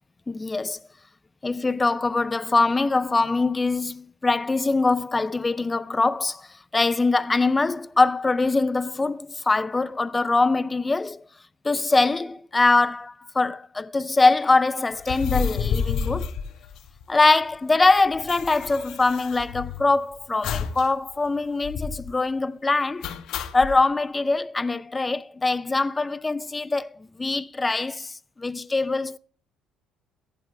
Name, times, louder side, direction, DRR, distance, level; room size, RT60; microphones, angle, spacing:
voice 1, 0.3-0.8 1.4-6.5 6.7-11.2 11.6-16.3 17.1-23.1 23.5-29.2, left 3 dB, 15° left, 0.4 m, -23 dB
sound 1, 15.0-17.3 17.5-17.6 17.8-19.9 20.4-20.9 21.1-21.2 21.6-22.1 23.0-23.7, left 6 dB, 65° left, 1.2 m, -30 dB
15.0 x 10.5 x 3.3 m
cardioid pair, 130°, 0 cm